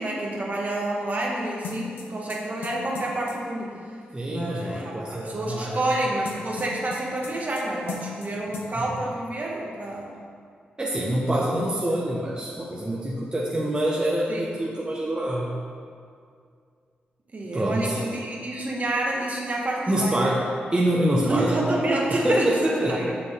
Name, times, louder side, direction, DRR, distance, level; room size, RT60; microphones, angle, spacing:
voice 1, 0.0-3.8 4.3-10.1 11.4-11.6 11.9-12.0 14.3-14.4 17.3-20.2 21.2-22.6 22.9-23.1, right 1 dB, 45° right, -3 dB, 1.6 m, -28 dB
sound 1, 1.6-3.4 6.3-7.6 7.9-8.3 8.5-8.7, left 5 dB, 90° left, 0.8 m, -37 dB
voice 2, 4.1-5.8 8.5-9.0 10.8-15.5 17.5-18.0 19.9-20.4 20.7-21.6 22.1-23.1, right 1 dB, 25° right, -5 dB, 1.1 m, -25 dB
6.9 x 6.3 x 3.7 m, 2.2 s
cardioid pair, 55°, 4 cm